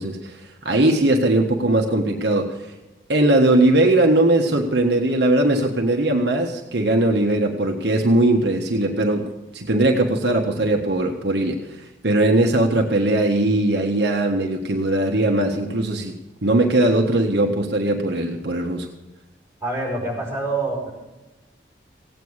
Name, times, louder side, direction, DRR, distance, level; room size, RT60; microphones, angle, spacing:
voice 1, 0.0-2.6 3.1-11.8 12.0-16.1 16.4-18.9, right 1 dB, 70° right, 1 dB, 1.5 m, -19 dB
voice 2, 19.6-20.9, right 2 dB, 15° right, -3 dB, 5.8 m, -26 dB
17.0 x 9.2 x 6.5 m, 1.1 s
head